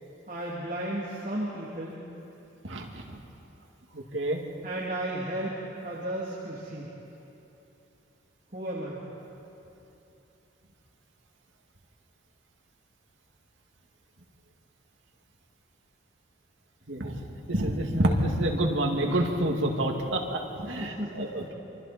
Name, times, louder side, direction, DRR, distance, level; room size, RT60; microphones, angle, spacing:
voice 1, 0.3-2.0 4.6-5.5 5.8-6.9 8.5-9.0 20.6-21.5, right 1 dB, 40° right, -6 dB, 2.9 m, -34 dB
voice 2, 16.9-17.2 17.5-21.5, right 1 dB, 85° right, 1 dB, 2.4 m, -27 dB
28.5 x 24.0 x 4.4 m, 2.9 s
head